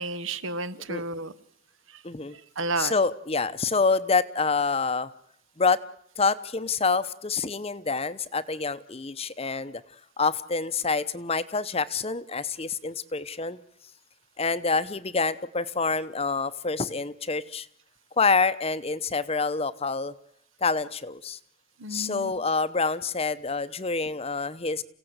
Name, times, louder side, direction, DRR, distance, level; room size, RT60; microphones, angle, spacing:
voice 1, 0.0-1.3 1.9-2.0 2.3-2.9 21.8-22.3, right 2 dB, 65° right, 14 dB, 1.4 m, -32 dB
voice 2, 2.0-2.4 2.8-5.1 5.6-5.8 6.2-9.8 10.2-13.6 14.4-17.7 18.2-20.1 20.6-21.4 21.9-24.8, left 4 dB, 30° left, 15 dB, 0.9 m, -27 dB
29.5 x 17.0 x 8.0 m, 0.74 s
head